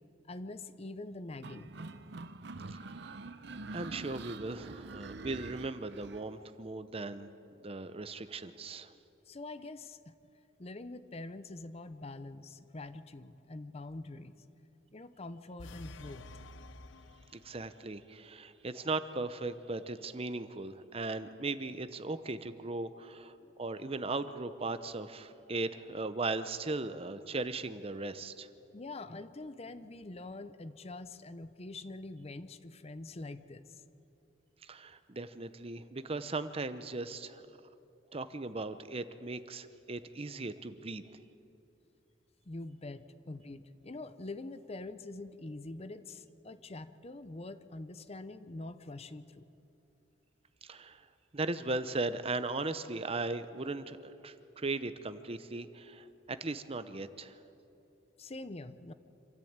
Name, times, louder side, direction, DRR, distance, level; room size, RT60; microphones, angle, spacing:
voice 1, 0.3-1.7 9.3-10.1 10.6-14.3 14.9-16.3 23.4-23.5 28.7-33.8 42.5-49.5 58.2-58.9, left 2 dB, 35° left, 12 dB, 0.7 m, -45 dB
sound 1, 1.4-6.2, right 3 dB, 60° right, 0.7 m, -45 dB
voice 2, 2.7-3.2 3.7-7.3 7.6-8.9 17.3-28.5 34.6-37.5 38.1-41.0 50.6-51.1 51.3-57.4, right 3 dB, 30° right, 12 dB, 0.7 m, -38 dB
sound 2, 15.6-17.9, left 2 dB, 85° left, 0.7 m, -50 dB
26.5 x 14.0 x 8.8 m, 2.9 s
head